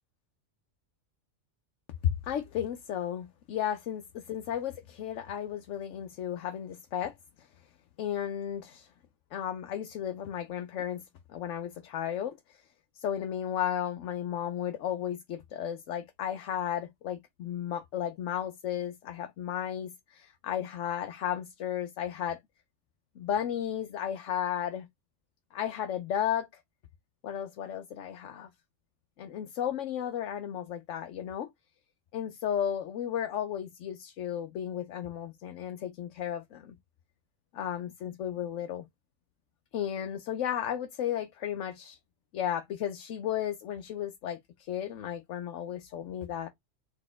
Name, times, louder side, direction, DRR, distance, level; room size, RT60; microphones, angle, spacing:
voice 1, 2.0-7.5 8.0-8.9 9.3-11.0 11.3-12.6 12.9-22.4 23.2-24.9 25.5-26.6 27.2-28.5 29.2-31.5 32.1-36.8 37.5-38.9 39.7-42.0 42.3-46.5, left 10 dB, 85° left, 1.0 m, -34 dB
4.0 x 3.6 x 3.4 m
omnidirectional pair, 1.2 m